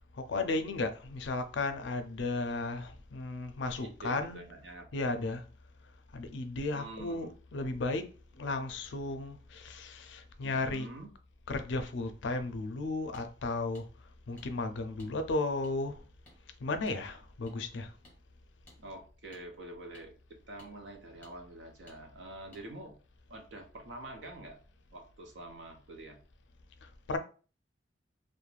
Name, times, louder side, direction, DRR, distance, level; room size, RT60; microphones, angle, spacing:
voice 1, 0.2-4.4 4.9-5.4 6.1-8.1 8.4-10.9 11.5-13.8 14.3-16.0 16.6-17.9 26.8-27.2, left 3 dB, 70° left, 0.4 m, -34 dB
voice 2, 3.8-5.3 6.7-7.3 10.4-11.1 18.8-22.9 23.3-24.6 24.9-26.2, right 2 dB, 70° right, 0.6 m, -47 dB
sound 1, 13.1-13.3 13.7-13.9 14.4-14.5 15.0-15.1 15.6-15.7 16.2-16.4 16.9-17.0 17.5-17.6 18.0-18.2 18.7-18.8 19.3-19.4 19.9-20.1 20.6-20.7 21.2-21.3 21.9-22.0 22.5-22.6, left 1 dB, 10° left, 0.8 m, -57 dB
2.4 x 2.1 x 3.1 m
head